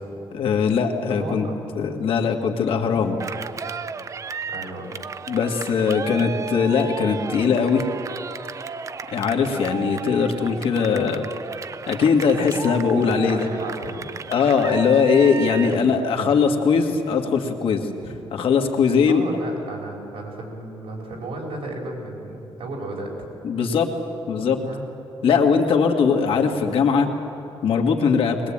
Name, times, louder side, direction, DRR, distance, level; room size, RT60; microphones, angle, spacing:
voice 1, 0.3-1.5 1.8-3.2 5.3-7.8 9.1-11.2 11.9-13.5 14.3-17.9 18.3-19.2 23.4-23.9 24.3-24.6 25.2-27.1 27.6-28.4, left 6 dB, 65° left, 3 dB, 2.0 m, -20 dB
voice 2, 1.2-1.6 2.9-3.0 4.5-5.0 9.3-9.5 12.9-14.0 15.6-15.9 18.0-18.2 19.1-23.1 23.5-23.7 24.6-24.8, right 2 dB, 65° right, 0 dB, 4.9 m, -34 dB
Cheering, 3.2-15.8, right 6 dB, 30° right, 0.5 m, -34 dB
21.5 x 21.0 x 8.8 m, 2.9 s
cardioid pair, 155°, 10 cm